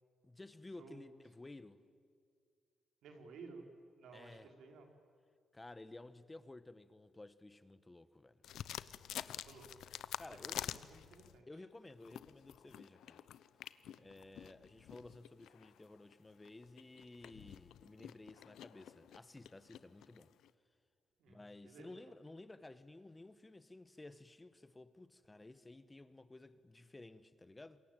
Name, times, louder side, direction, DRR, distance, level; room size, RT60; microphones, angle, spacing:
voice 1, 0.2-1.8 4.1-4.5 5.5-8.4 10.2-10.6 11.5-13.2 14.0-20.3 21.3-27.8, left 2 dB, 20° left, 1.2 m, -54 dB
voice 2, 3.0-3.7 4.0-4.9 9.4-9.9 10.5-11.5 21.2-22.1, right 4 dB, 85° right, 4.2 m, -55 dB
sound 1, 8.4-11.4 11.9-20.5, left 11 dB, 85° left, 0.8 m, -48 dB
27.0 x 22.5 x 9.1 m
cardioid pair, 95°, 0 cm